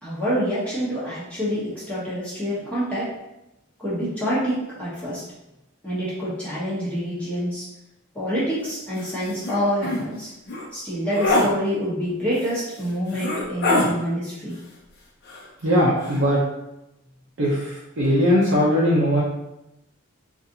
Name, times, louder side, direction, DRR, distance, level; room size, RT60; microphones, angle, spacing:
voice 1, 0.0-3.1 3.8-5.2 5.8-7.6 8.1-10.3 10.7-14.6, equal, 5° left, -10 dB, 1.0 m, -27 dB
sound 1, 9.0-9.1 9.4-9.6 9.8-10.0 10.5-10.7 11.1-11.5 12.4-12.5 13.1-13.9 15.3-15.7 16.0-16.2, left 2 dB, 50° left, 0.7 m, -23 dB
voice 2, 15.6-16.4 17.4-19.2, equal, 60° right, -5 dB, 0.7 m, -20 dB
4.0 x 2.5 x 2.7 m, 0.90 s
head